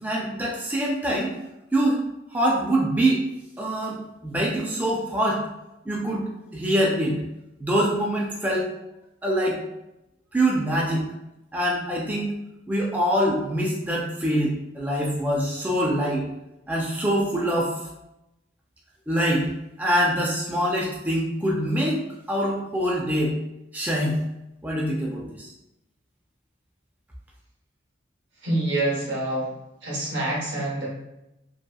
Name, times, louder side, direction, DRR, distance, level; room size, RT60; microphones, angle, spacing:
voice 1, 0.0-1.3 1.7-2.0 2.3-3.2 3.6-4.0 4.2-5.4 5.9-7.2 7.6-8.7 9.2-9.6 10.3-11.0 11.5-12.3 12.7-16.2 16.7-17.7 19.1-19.4 19.8-22.0 22.3-23.4 23.7-24.2 24.6-25.5, right 1 dB, 10° right, -4 dB, 0.3 m, -24 dB
voice 2, 28.4-29.5 29.8-30.9, right 1 dB, 80° right, -4 dB, 0.9 m, -26 dB
2.8 x 2.4 x 2.2 m, 0.89 s
head